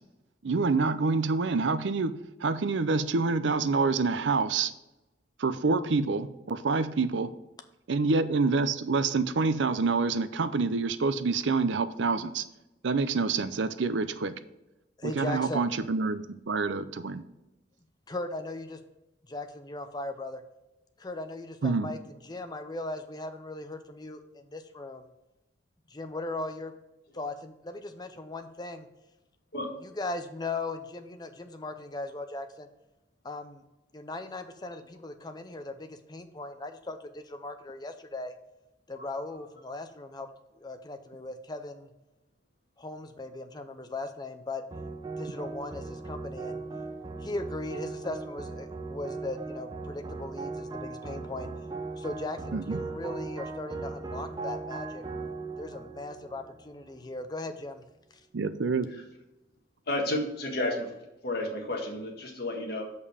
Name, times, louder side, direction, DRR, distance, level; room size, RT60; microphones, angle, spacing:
voice 1, 0.4-2.1 2.4-4.7 5.4-7.3 7.9-12.4 12.8-14.3 15.0-17.2 21.6-21.9 52.5-52.9 58.3-58.9, right 4 dB, 75° right, 13 dB, 0.5 m, -27 dB
voice 2, 15.0-15.6 18.1-18.8 19.3-20.4 21.0-25.1 25.9-26.7 27.1-28.9 30.0-32.7 33.2-33.6 33.9-38.3 38.9-40.3 40.6-41.9 42.8-44.6 45.2-46.6 47.2-51.5 52.0-55.0 55.6-57.8, left 2 dB, 20° left, 8 dB, 0.6 m, -38 dB
sound 1, 44.7-57.2, right 3 dB, 20° right, 0.7 m, -38 dB
voice 3, 59.9-61.0 61.2-62.8, left 1 dB, 55° left, 1 dB, 1.7 m, -31 dB
6.7 x 5.5 x 4.9 m, 0.96 s
head